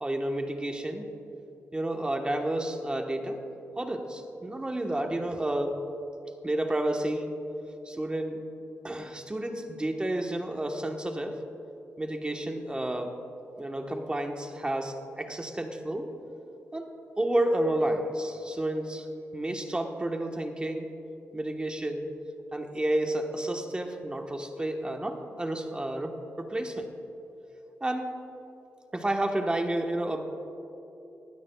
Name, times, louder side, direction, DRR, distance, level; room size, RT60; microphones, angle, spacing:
voice 1, 0.0-1.1 1.7-3.4 3.8-5.8 6.4-7.3 7.8-8.4 8.8-11.4 12.0-13.2 13.6-16.1 16.7-16.9 17.2-19.1 19.3-20.9 21.3-22.1 22.5-26.9 27.8-28.2 28.9-30.2, right 1 dB, 20° right, 3 dB, 1.2 m, -30 dB
20.5 x 15.5 x 2.3 m, 3.0 s
cardioid pair, 95°, 5 cm